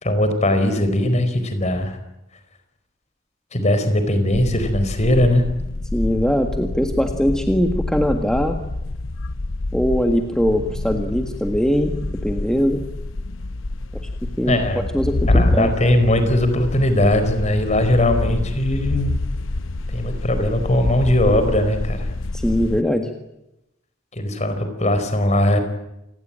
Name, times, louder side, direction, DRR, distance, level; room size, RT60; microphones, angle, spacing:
voice 1, 0.0-2.0 3.5-5.5 14.5-14.8 15.3-19.1 19.9-22.1 24.1-25.6, left 1 dB, 35° left, 9 dB, 4.6 m, -19 dB
sound 1, 4.3-22.8, left 2 dB, 80° left, 0.9 m, -27 dB
voice 2, 5.9-8.6 9.7-12.0 12.2-12.8 14.4-15.7 22.3-23.1, equal, 5° left, 4 dB, 1.6 m, -21 dB
28.5 x 20.0 x 8.9 m, 0.89 s
head